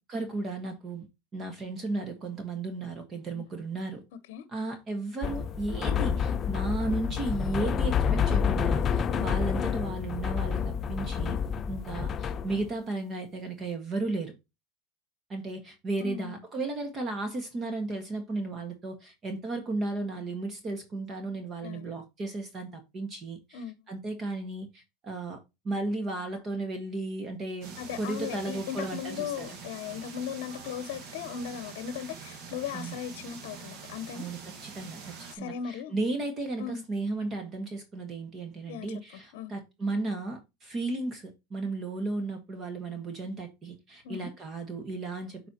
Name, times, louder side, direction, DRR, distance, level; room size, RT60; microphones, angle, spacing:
voice 1, 0.1-1.1 1.3-4.0 4.5-11.4 11.7-14.3 15.3-29.6 32.7-32.9 34.1-45.5, right 2 dB, 25° right, 1.5 m, -34 dB
sound 1, 5.2-12.7, left 7 dB, 30° left, 0.5 m, -28 dB
voice 2, 16.0-16.4 21.6-22.0 23.5-23.7 27.8-34.3 35.3-35.9 36.6-36.8 38.7-39.0 39.3-39.5 44.0-44.3, left 8 dB, 70° left, 0.8 m, -37 dB
sound 2, 27.6-35.4, right 5 dB, 45° right, 1.8 m, -45 dB
8.4 x 4.5 x 2.8 m
supercardioid pair, 135°, 0 cm